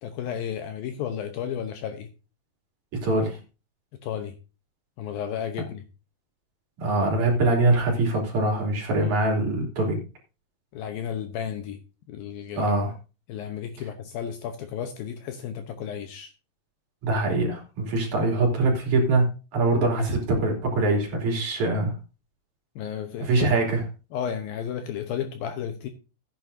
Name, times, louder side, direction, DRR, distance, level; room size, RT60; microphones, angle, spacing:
voice 1, 0.0-2.1 3.9-4.3 5.0-5.8 9.0-9.2 10.7-11.8 12.1-12.8 13.3-16.3 22.8-23.3 24.1-25.9, left 8 dB, 75° left, 7 dB, 2.4 m, -33 dB
voice 2, 2.9-3.4 6.8-10.0 12.6-12.9 17.0-21.9 23.2-23.8, right 2 dB, 50° right, 0 dB, 4.1 m, -23 dB
15.0 x 9.7 x 2.7 m, 0.31 s
omnidirectional pair, 4.8 m